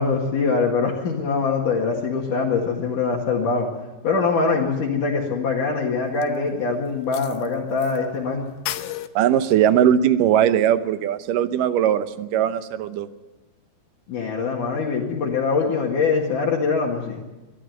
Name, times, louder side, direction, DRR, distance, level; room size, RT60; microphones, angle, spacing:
voice 1, 0.0-3.7 4.0-8.5 14.1-17.2, left 4 dB, 65° left, -3 dB, 3.4 m, -23 dB
sound 1, 6.2-6.3 7.1-8.0 8.2-8.3 8.7-9.1, left 14 dB, 90° left, 2.6 m, -31 dB
voice 2, 9.2-13.1, right 10 dB, 75° right, 12 dB, 2.4 m, -19 dB
22.5 x 13.0 x 9.6 m, 1.1 s
omnidirectional pair, 4.0 m